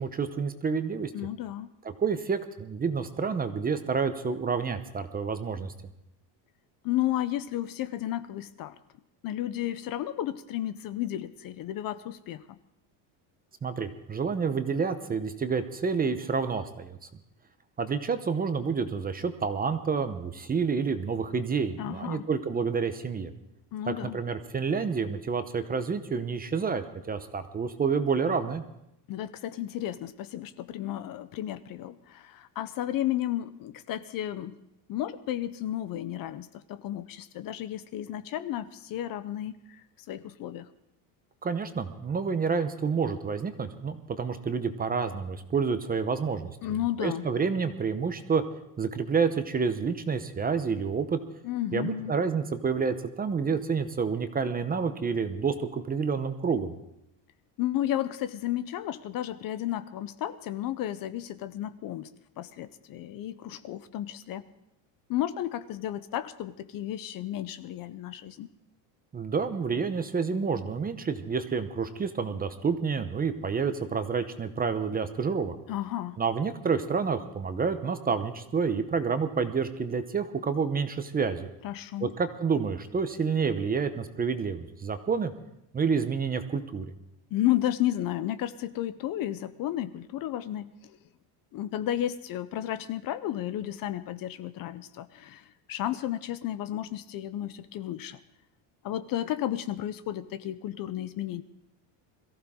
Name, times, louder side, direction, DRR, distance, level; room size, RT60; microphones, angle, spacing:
voice 1, 0.0-1.1 2.0-5.7 13.6-17.0 17.8-23.3 23.9-28.6 41.4-46.5 47.0-48.4 48.8-51.2 51.7-56.7 69.1-75.5 76.2-81.5 82.0-85.3 85.7-86.9, right 5 dB, 20° right, 9 dB, 0.7 m, -29 dB
voice 2, 1.1-1.7 6.8-8.8 9.2-12.6 21.8-22.3 23.7-24.2 29.1-34.5 34.9-39.8 40.1-40.7 46.6-47.3 51.4-52.2 57.6-62.1 62.4-64.5 65.1-68.5 75.7-76.2 81.6-82.1 87.3-91.0 91.5-98.2 98.8-101.4, left 12 dB, 45° left, 13 dB, 0.6 m, -33 dB
22.0 x 15.0 x 3.7 m, 0.82 s
cardioid pair, 145°, 49 cm